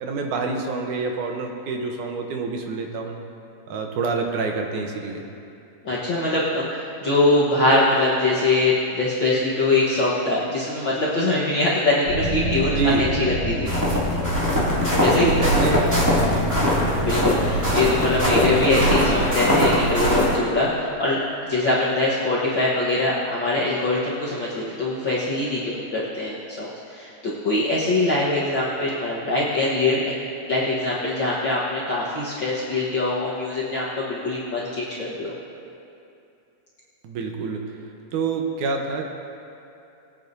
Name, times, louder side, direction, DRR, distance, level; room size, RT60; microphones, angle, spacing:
voice 1, 0.0-3.2 3.7-5.2 12.8-13.1 15.1-15.9 16.2-16.4 37.0-37.8 38.1-39.1, right 4 dB, 75° right, 2 dB, 2.3 m, -27 dB
voice 2, 5.8-12.8 13.2-13.7 15.0-15.3 17.0-30.1 30.5-35.3, left 2 dB, 60° left, -7 dB, 1.3 m, -23 dB
sound 1, 12.1-19.2, left 1 dB, 80° left, 3.3 m, -28 dB
sound 2, 13.7-20.3, equal, 5° right, 1.7 m, -21 dB
21.5 x 8.9 x 2.7 m, 2.7 s
omnidirectional pair, 3.8 m